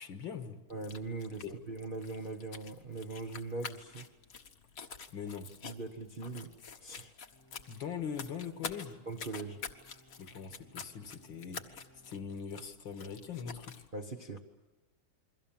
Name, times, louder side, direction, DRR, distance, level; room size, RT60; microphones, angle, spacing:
voice 1, 0.0-0.6 1.4-1.6 5.1-5.5 7.7-9.0 10.2-13.9, left 7 dB, 65° left, 8 dB, 2.2 m, -42 dB
sound 1, 0.7-13.9, left 5 dB, 45° left, 1.5 m, -48 dB
voice 2, 0.7-4.1 5.6-6.5 6.8-7.1 9.1-9.6 13.9-14.4, right 3 dB, 35° right, 2 dB, 1.0 m, -41 dB
sound 2, 7.3-12.4, equal, 10° left, 1.4 m, -64 dB
29.0 x 22.5 x 7.4 m, 1.1 s
omnidirectional pair, 2.4 m